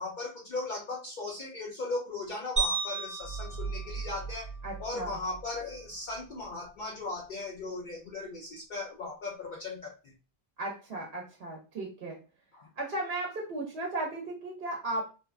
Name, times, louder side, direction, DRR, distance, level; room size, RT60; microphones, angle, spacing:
voice 1, 0.0-4.5 4.8-10.1 12.5-12.7, left 3 dB, 60° left, -2 dB, 0.6 m, -37 dB
sound 1, 2.6-4.9, right 4 dB, 20° right, 0.6 m, -34 dB
sound 2, 3.2-6.6, right 5 dB, 85° left, 1.0 m, -41 dB
voice 2, 4.6-5.2 10.6-12.2 12.8-15.1, right 2 dB, 75° right, -1 dB, 0.9 m, -35 dB
2.8 x 2.2 x 2.3 m, 0.33 s
omnidirectional pair, 1.1 m